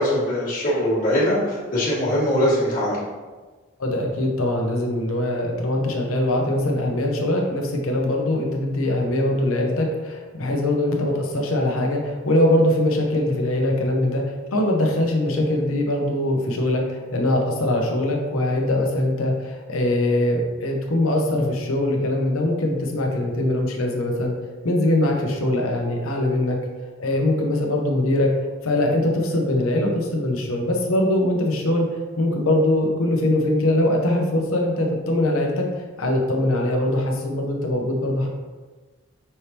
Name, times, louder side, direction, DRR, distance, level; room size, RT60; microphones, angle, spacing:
voice 1, 0.0-3.0, equal, 40° left, -9 dB, 1.5 m, -21 dB
voice 2, 3.8-24.3 24.6-26.6 27.0-28.3 28.6-31.9 32.2-35.7 36.0-38.3, left 1 dB, 75° left, 1 dB, 0.8 m, -22 dB
5.5 x 3.4 x 2.8 m, 1.3 s
head